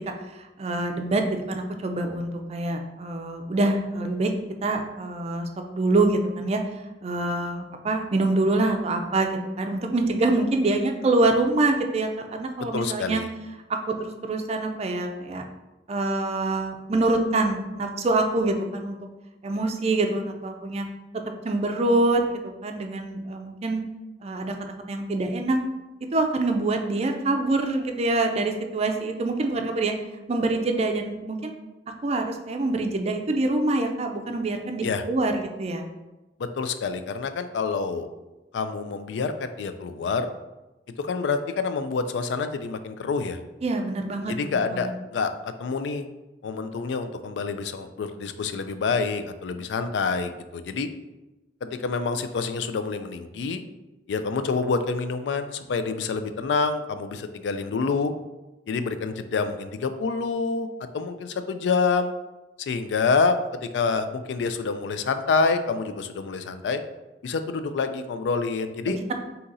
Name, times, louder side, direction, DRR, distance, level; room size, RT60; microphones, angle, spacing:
voice 1, 0.6-4.3 4.6-5.5 5.7-6.6 7.0-13.2 13.7-15.4 15.9-19.0 19.4-20.9 21.4-23.8 24.2-24.5 24.9-25.6 26.1-29.9 30.3-31.5 32.0-35.9 43.6-44.9 68.9-69.1, right 2 dB, 35° right, 4 dB, 0.4 m, -25 dB
voice 2, 12.7-13.3 34.8-35.0 36.4-38.1 38.5-40.3 41.0-43.4 44.3-46.1 46.4-50.9 51.6-53.6 54.1-58.1 58.7-60.7 60.9-62.1 62.6-66.8 67.2-69.0, left 4 dB, 80° left, 9 dB, 0.3 m, -27 dB
3.8 x 2.8 x 4.0 m, 1.0 s
head